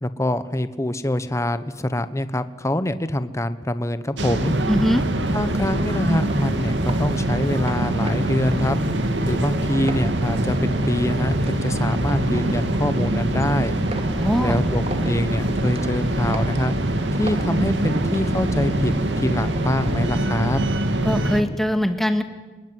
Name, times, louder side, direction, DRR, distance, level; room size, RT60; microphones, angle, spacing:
voice 1, 0.0-4.5 5.3-8.8 9.3-13.8 14.4-16.7 17.1-20.6, left 1 dB, 15° left, 12 dB, 1.2 m, -25 dB
sound 1, 4.2-21.4, right 1 dB, 80° right, 2.3 m, -24 dB
voice 2, 4.7-5.1 14.2-14.6 21.0-22.2, equal, ahead, 7 dB, 2.0 m, -22 dB
sound 2, 5.2-20.3, right 1 dB, 35° right, 2.6 m, -34 dB
24.5 x 22.0 x 9.5 m, 1.3 s
head